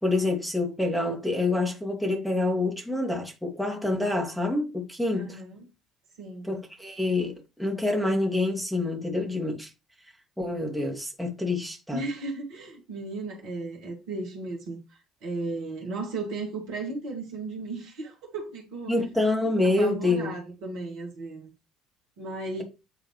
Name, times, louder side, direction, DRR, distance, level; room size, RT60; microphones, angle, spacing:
voice 1, 0.0-5.4 6.4-9.7 10.4-12.0 18.9-20.3, left 2 dB, ahead, 2.3 m, -27 dB
voice 2, 5.1-5.6 6.2-6.5 11.9-14.8 15.2-18.9 19.6-21.5 22.2-22.6, right 3 dB, 60° right, 2.2 m, -35 dB
9.1 x 3.8 x 3.2 m
figure-of-eight pair, 55°, 0 cm